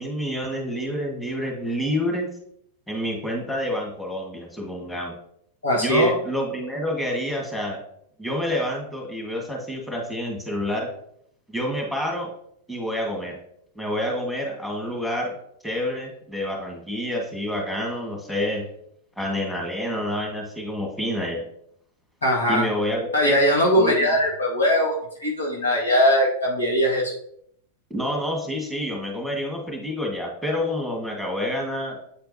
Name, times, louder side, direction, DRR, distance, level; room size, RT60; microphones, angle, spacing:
voice 1, 0.0-2.3 2.9-5.1 5.8-7.8 8.2-10.9 11.5-12.3 12.7-13.4 13.7-15.4 15.6-18.6 19.2-21.4 22.5-23.4 23.8-24.1 27.9-32.0, equal, ahead, 0 dB, 1.5 m, -28 dB
voice 2, 5.6-6.1 22.2-22.7 23.1-24.9 25.2-27.1, equal, 90° left, -2 dB, 1.7 m, -20 dB
8.1 x 4.4 x 2.7 m, 0.72 s
hypercardioid pair, 105°, 0 cm